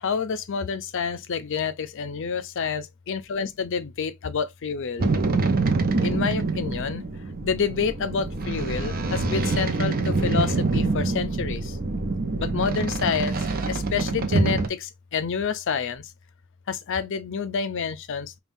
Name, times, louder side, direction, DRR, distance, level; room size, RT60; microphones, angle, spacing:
voice 1, 0.0-5.1 6.0-7.0 7.4-11.7 12.4-13.4 13.7-16.0 16.7-18.4, left 6 dB, 60° left, 0.5 m, -28 dB
sound 1, 5.0-14.7, right 3 dB, 45° right, 0.6 m, -25 dB
5.4 x 2.3 x 2.6 m
head